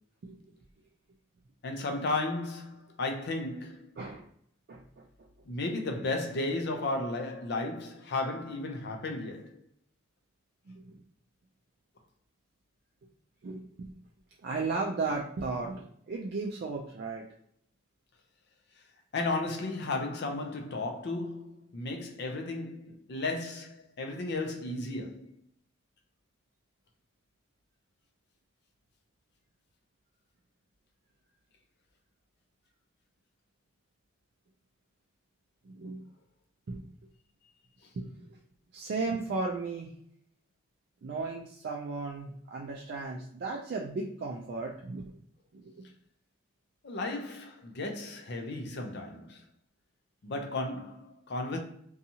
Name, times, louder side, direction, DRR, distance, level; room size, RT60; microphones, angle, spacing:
voice 1, 1.6-3.9 5.5-9.6 19.1-25.3 46.8-49.4 50.2-51.6, left 2 dB, 55° left, 0.5 m, -34 dB
voice 2, 4.7-5.1 10.7-11.0 13.4-13.9 14.4-17.3 35.6-36.0 36.7-36.8 38.0-38.1 38.7-39.9 41.0-45.1 45.5-45.9, right 3 dB, 55° right, 0.3 m, -35 dB
2.7 x 2.3 x 2.7 m
head